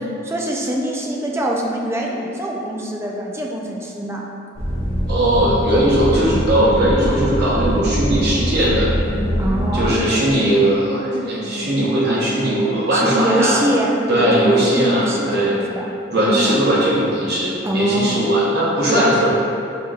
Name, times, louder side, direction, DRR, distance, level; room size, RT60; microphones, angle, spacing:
voice 1, 0.2-4.2 6.2-6.5 9.4-10.0 12.9-16.6 17.6-18.3 18.9-19.2, right 1 dB, 15° right, -2 dB, 0.3 m, -24 dB
sound 1, 4.5-9.9, equal, 40° right, 1.4 m, -23 dB
voice 2, 5.1-8.9 9.7-13.6 14.1-15.6 16.1-19.3, right 1 dB, 55° right, -8 dB, 0.9 m, -18 dB
sound 2, 5.7-14.6, equal, 25° left, 0.6 m, -31 dB
5.0 x 2.9 x 2.3 m, 2.7 s
head